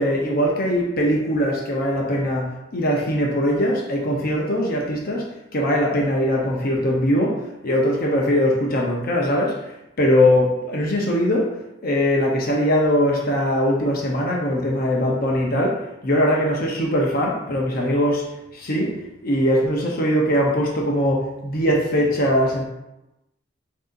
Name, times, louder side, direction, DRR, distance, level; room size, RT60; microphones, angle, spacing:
voice 1, 0.0-5.3 5.5-9.6 10.0-11.5 11.8-18.3 18.5-22.6, equal, 50° left, -1 dB, 0.7 m, -21 dB
7.5 x 2.8 x 2.5 m, 0.94 s
head